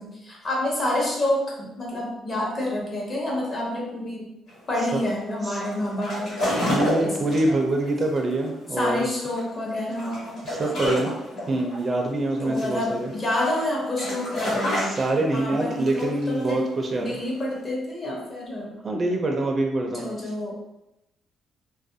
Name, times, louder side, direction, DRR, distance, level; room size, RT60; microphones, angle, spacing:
voice 1, 0.0-4.4 4.7-6.6 7.0-7.3 8.8-10.4 12.4-14.9 15.3-16.6 17.0-18.7 19.9-20.5, left 1 dB, 40° left, -3 dB, 0.9 m, -28 dB
sound 1, 4.5-17.6, left 1 dB, 80° left, 1.3 m, -30 dB
voice 2, 6.7-9.0 10.4-11.1 11.5-13.1 14.8-17.2 18.8-20.1, right 2 dB, 40° right, 2 dB, 0.4 m, -25 dB
2.4 x 2.1 x 2.6 m, 0.92 s
cardioid pair, 90°, 0 cm